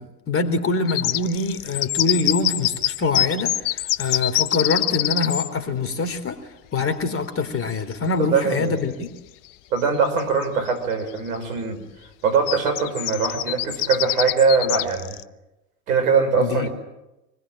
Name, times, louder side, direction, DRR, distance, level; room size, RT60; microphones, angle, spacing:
voice 1, 0.0-6.4 6.7-9.1 16.4-16.7, left 3 dB, 30° left, 8 dB, 3.7 m, -24 dB
sound 1, 0.9-5.5 7.9-8.0 8.4-8.5 9.8-9.9 10.2-10.7 11.2-11.3 12.5-15.2, left 14 dB, 45° left, 1.0 m, -24 dB
voice 2, 8.2-8.8 9.7-11.9 12.2-15.2 15.9-16.7, right 5 dB, 70° right, 7 dB, 6.0 m, -22 dB
25.5 x 20.5 x 9.1 m, 0.98 s
hypercardioid pair, 80°, 45 cm